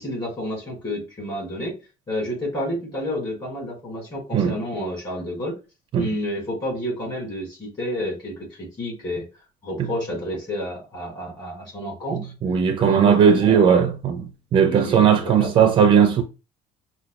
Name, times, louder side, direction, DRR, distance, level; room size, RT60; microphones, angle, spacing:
voice 1, 0.0-1.8 2.1-5.6 6.0-9.2 9.6-12.3 12.8-13.9 14.6-15.7, left 1 dB, 30° left, 2.2 m, -30 dB
voice 2, 12.4-14.2 14.5-16.2, right 7 dB, 35° right, 0.4 m, -17 dB
5.4 x 2.2 x 2.3 m
cardioid pair, 170°, 14 cm